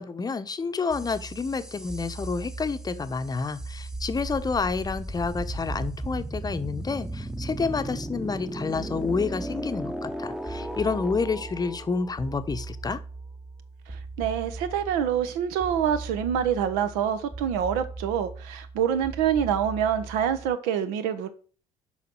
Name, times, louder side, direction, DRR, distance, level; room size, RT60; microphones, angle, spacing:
voice 1, 0.0-13.0, left 4 dB, 25° left, 0.9 m, -29 dB
sound 1, 0.9-20.5, right 2 dB, 5° right, 1.0 m, -37 dB
voice 2, 13.9-21.3, right 9 dB, 65° right, 1.1 m, -26 dB
7.6 x 5.7 x 6.3 m
figure-of-eight pair, 50°, 16 cm